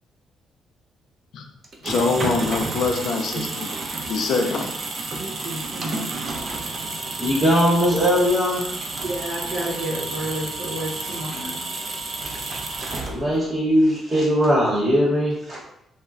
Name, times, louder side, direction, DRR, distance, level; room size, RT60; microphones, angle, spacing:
sound 1, 1.6-13.5, right 3 dB, 50° right, 0.4 m, -31 dB
voice 1, 1.8-3.7 4.1-4.7, left 4 dB, 75° left, 4 dB, 0.4 m, -24 dB
voice 2, 5.2-6.1 9.0-11.5, right 1 dB, 80° right, -7 dB, 0.8 m, -31 dB
voice 3, 7.2-8.7 12.2-12.4 13.1-15.6, equal, 35° right, -7 dB, 0.9 m, -20 dB
3.0 x 2.0 x 2.4 m, 0.78 s
cardioid pair, 90°, 0 cm